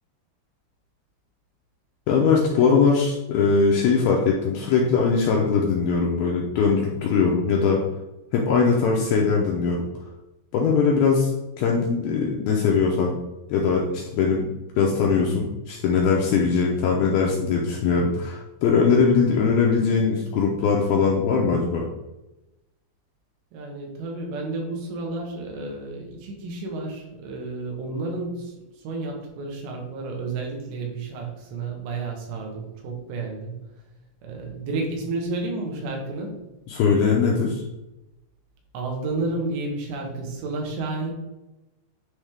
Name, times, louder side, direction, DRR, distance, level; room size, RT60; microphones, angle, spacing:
voice 1, 2.1-7.8 8.3-9.9 10.5-11.3 11.6-13.2 13.5-14.5 14.8-21.9 36.7-37.6, left 5 dB, 80° left, -2 dB, 2.2 m, -21 dB
voice 2, 23.5-33.7 34.2-36.4 38.7-41.1, right 3 dB, 80° right, 0 dB, 3.5 m, -31 dB
9.6 x 3.6 x 3.5 m, 0.99 s
omnidirectional pair, 5.1 m